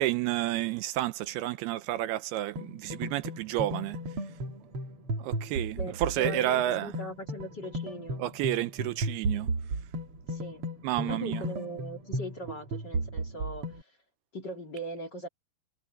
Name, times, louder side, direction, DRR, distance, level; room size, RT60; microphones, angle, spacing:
voice 1, 0.0-4.0 5.2-6.9 8.2-9.5 10.8-11.4, right 15 dB, 80° right, 2.6 m, -30 dB
sound 1, 2.6-13.8, right 1 dB, 40° right, 2.6 m, -35 dB
voice 2, 5.8-8.2 10.3-10.6 11.0-13.9 14.3-15.3, equal, 30° left, 2.7 m, -40 dB
omnidirectional pair, 4.7 m